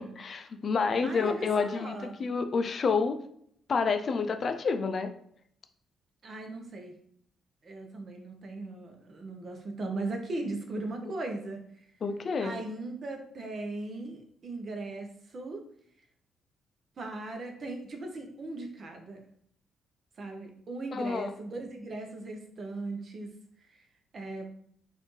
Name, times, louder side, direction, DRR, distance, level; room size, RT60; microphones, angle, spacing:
voice 1, 0.0-3.2 3.7-5.1 12.0-12.5 20.9-21.3, left 5 dB, 45° left, 7 dB, 0.4 m, -29 dB
voice 2, 1.0-2.2 6.2-6.9 7.6-11.6 12.4-15.6 17.0-19.2 20.2-23.3 23.7-23.8 24.1-24.5, right 2 dB, 45° right, 4 dB, 0.8 m, -38 dB
4.1 x 2.6 x 3.1 m, 0.66 s
cardioid pair, 90°, 0 cm